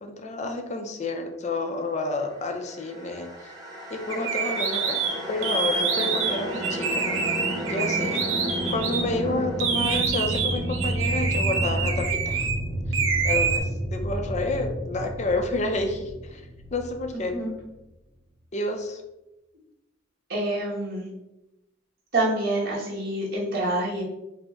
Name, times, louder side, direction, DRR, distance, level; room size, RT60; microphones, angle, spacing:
voice 1, 0.0-3.3 3.9-5.0 5.3-7.2 7.7-8.3 8.7-12.5 13.2-16.4 16.7-17.4 18.5-19.0, left 2 dB, 35° left, 5 dB, 0.5 m, -29 dB
sound 1, 2.6-17.8, equal, 20° right, 0.8 m, -31 dB
sound 2, 4.1-9.0 9.6-12.6 12.9-13.6, right 5 dB, 85° right, 0.6 m, -27 dB
voice 2, 17.1-17.5 20.3-21.1 22.1-24.0, right 1 dB, 55° right, -6 dB, 1.3 m, -27 dB
5.0 x 2.1 x 3.5 m, 0.94 s
head